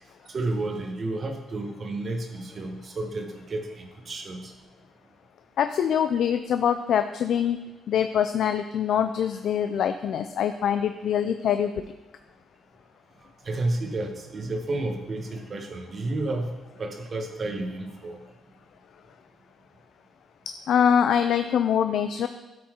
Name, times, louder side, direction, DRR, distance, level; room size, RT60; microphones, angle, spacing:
voice 1, 0.3-4.5 13.4-16.5 16.8-18.2, right 2 dB, 40° right, 4 dB, 1.3 m, -31 dB
voice 2, 5.6-7.6 7.9-11.8 20.7-22.3, left 8 dB, 70° left, 8 dB, 0.4 m, -24 dB
12.5 x 4.3 x 3.7 m, 1.1 s
cardioid pair, 90°, 0 cm